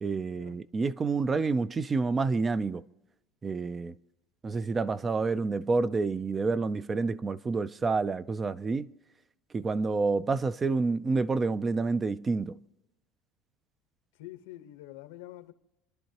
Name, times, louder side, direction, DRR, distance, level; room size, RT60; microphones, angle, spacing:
voice 1, 0.0-2.8 3.4-4.0 4.4-8.9 9.5-12.6, right 4 dB, 20° right, 0.4 m, -28 dB
voice 2, 14.2-15.5, left 15 dB, 90° left, 1.1 m, -46 dB
29.0 x 11.0 x 2.9 m
supercardioid pair, 140°, 0 cm